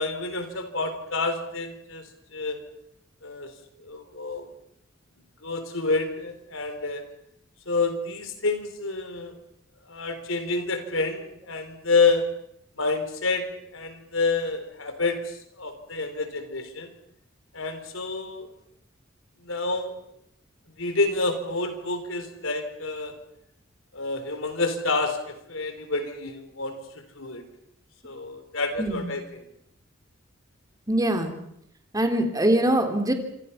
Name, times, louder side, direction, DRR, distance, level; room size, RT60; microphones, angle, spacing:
voice 1, 0.0-2.6 3.2-3.5 3.8-4.5 5.4-7.0 7.7-9.4 9.9-12.3 12.8-16.9 17.5-18.5 19.4-20.0 20.8-23.2 23.9-27.5 28.0-29.4, left 3 dB, 90° left, 8 dB, 3.9 m, -28 dB
voice 2, 30.9-31.4 31.9-33.1, right 1 dB, 20° right, 4 dB, 3.4 m, -23 dB
27.0 x 25.0 x 5.8 m, 0.74 s
head